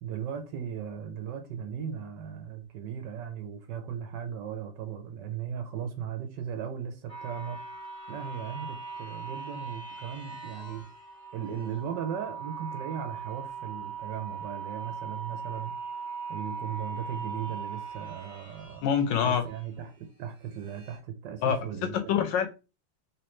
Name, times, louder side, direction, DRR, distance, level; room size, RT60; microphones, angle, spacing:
voice 1, 0.0-7.6 8.1-10.9 11.3-15.7 16.3-18.8 19.2-22.1, right 8 dB, 70° right, 1.2 m, -37 dB
sound 1, 7.1-19.8 20.4-21.0, right 5 dB, 5° left, 0.7 m, -40 dB
voice 2, 18.8-19.4 21.4-21.6 21.8-22.5, left 8 dB, 75° left, 1.2 m, -25 dB
3.1 x 3.0 x 3.0 m
omnidirectional pair, 2.1 m